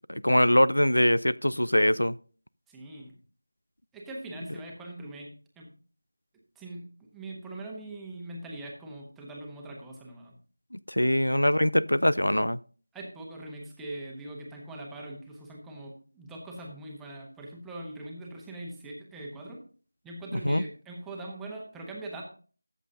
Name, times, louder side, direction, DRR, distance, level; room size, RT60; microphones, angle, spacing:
voice 1, 0.1-2.1 10.9-12.6 20.3-20.6, equal, 85° left, 0.4 m, -23 dB
voice 2, 2.7-3.1 3.9-5.3 5.6-5.7 6.5-6.9 7.1-10.3 12.9-19.6 20.0-22.2, right 1 dB, 5° right, 1.1 m, -42 dB
13.5 x 7.5 x 2.7 m
figure-of-eight pair, 170°, 0 cm